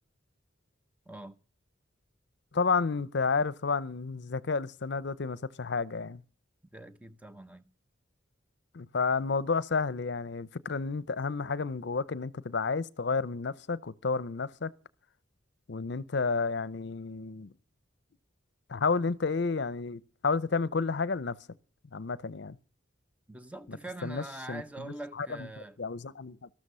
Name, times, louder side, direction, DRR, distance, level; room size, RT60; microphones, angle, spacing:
voice 1, 1.1-1.4 6.7-7.7 23.3-25.8, right 2 dB, 5° right, 0.7 m, -43 dB
voice 2, 2.5-6.2 8.7-14.7 15.7-17.5 18.7-21.4 21.9-22.6 24.0-24.6 25.2-25.3 25.8-26.5, left 4 dB, 60° left, 0.6 m, -31 dB
13.5 x 13.0 x 5.6 m
head